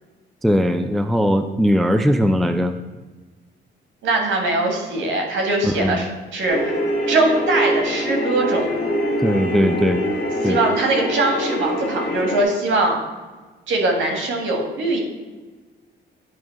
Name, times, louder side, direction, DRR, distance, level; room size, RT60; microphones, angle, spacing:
voice 1, 0.4-2.7 5.6-6.0 9.2-10.0 10.4-10.6, equal, ahead, 8 dB, 0.4 m, -19 dB
voice 2, 4.0-6.8 7.1-8.7 10.4-13.0 13.7-15.0, right 2 dB, 80° right, 2 dB, 1.7 m, -21 dB
sound 1, 6.5-12.4, equal, 45° left, 2.0 m, -24 dB
9.1 x 3.2 x 5.6 m, 1.3 s
cardioid pair, 90°, 20 cm